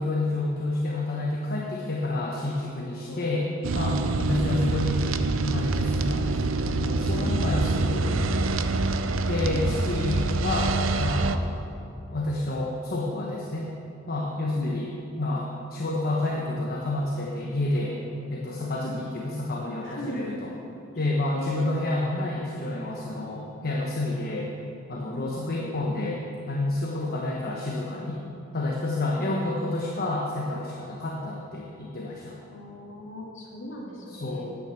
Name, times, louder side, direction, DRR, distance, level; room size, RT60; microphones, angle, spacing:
voice 1, 0.0-3.5 3.7-5.0 5.4-8.8 9.3-11.4 12.1-13.7 14.1-14.9 15.2-18.0 18.3-20.5 21.0-24.5 24.9-28.2 28.5-32.4 34.1-34.5, left 2 dB, 50° left, -2 dB, 1.1 m, -29 dB
sound 1, 3.6-11.4, right 3 dB, 85° right, 0.6 m, -25 dB
voice 2, 4.3-4.8 7.0-7.9 9.4-9.9 14.5-14.8 17.9-18.0 18.8-19.0 19.8-20.4 20.9-21.1 21.3-21.7 25.1-25.3 29.2-29.3 32.5-34.4, left 1 dB, 70° left, -6 dB, 2.6 m, -38 dB
9.8 x 8.8 x 7.5 m, 2.8 s
head